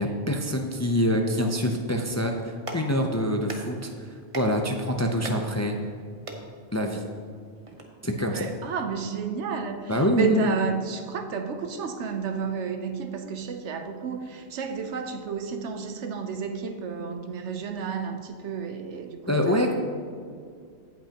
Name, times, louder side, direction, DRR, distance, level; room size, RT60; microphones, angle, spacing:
voice 1, 0.0-3.9 4.3-5.7 6.7-7.0 8.0-8.4 9.9-10.5 19.3-19.7, equal, 20° left, 2 dB, 0.4 m, -25 dB
Clapping, 2.3-7.8, right 1 dB, 30° right, 0.9 m, -43 dB
voice 2, 8.2-19.7, right 6 dB, 90° right, 7 dB, 1.1 m, -32 dB
16.5 x 5.7 x 2.9 m, 2.2 s
omnidirectional pair, 1.1 m